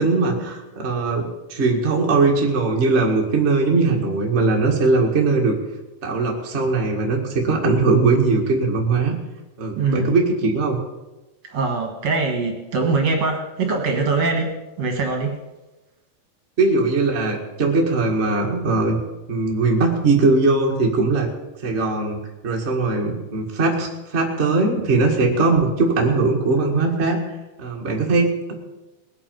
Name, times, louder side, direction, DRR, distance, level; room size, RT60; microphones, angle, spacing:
voice 1, 0.0-5.5 6.0-9.2 9.6-10.8 16.6-19.0 19.3-21.3 21.6-27.2 27.6-28.5, right 3 dB, 30° right, -1 dB, 1.5 m, -20 dB
voice 2, 9.7-10.1 11.5-15.4, right 3 dB, 55° right, 2 dB, 2.4 m, -23 dB
20.5 x 8.6 x 5.4 m, 1.1 s
omnidirectional pair, 3.9 m